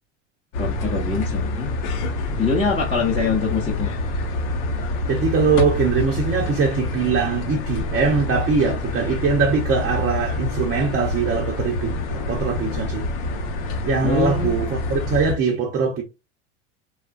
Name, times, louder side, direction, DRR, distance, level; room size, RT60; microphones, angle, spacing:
sound 1, 0.5-15.3, left 2 dB, 55° left, 0.9 m, -26 dB
voice 1, 0.6-1.7 2.4-3.9 14.0-14.6, left 4 dB, 15° left, 0.9 m, -24 dB
voice 2, 5.1-13.1 13.8-16.0, right 5 dB, 30° right, 0.8 m, -22 dB
3.5 x 2.4 x 2.4 m
hypercardioid pair, 95°, 38 cm